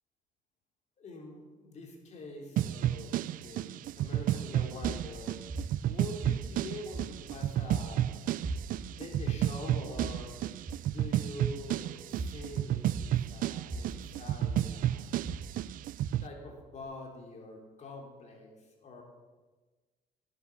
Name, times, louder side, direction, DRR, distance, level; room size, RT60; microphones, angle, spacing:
voice 1, 1.0-5.4 5.9-8.3 8.9-10.4 10.9-15.1 16.2-19.0, left 2 dB, 45° left, 1 dB, 3.0 m, -45 dB
sound 1, 2.6-16.3, right 12 dB, 60° right, 0.4 m, -32 dB
sound 2, 4.8-16.8, right 3 dB, 30° right, 2.6 m, -41 dB
15.0 x 8.8 x 7.1 m, 1.3 s
cardioid pair, 135°, 16 cm